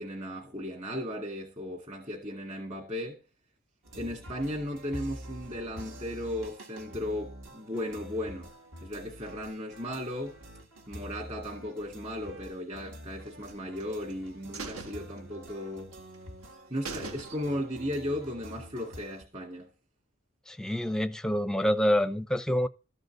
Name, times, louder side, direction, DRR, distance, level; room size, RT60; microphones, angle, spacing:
voice 1, 0.0-3.2 3.9-8.5 8.8-10.4 10.9-15.9 16.7-19.7, left 1 dB, 30° right, 2.0 m, -36 dB
sound 1, 3.8-19.2, equal, 65° right, 2.4 m, -47 dB
sound 2, 13.5-14.1 14.5-15.8 16.1-16.2 16.5-16.6 16.9-17.8 18.1-18.2, right 4 dB, 80° right, 1.6 m, -42 dB
voice 2, 20.5-22.7, equal, 5° left, 0.5 m, -27 dB
13.5 x 5.3 x 7.6 m
head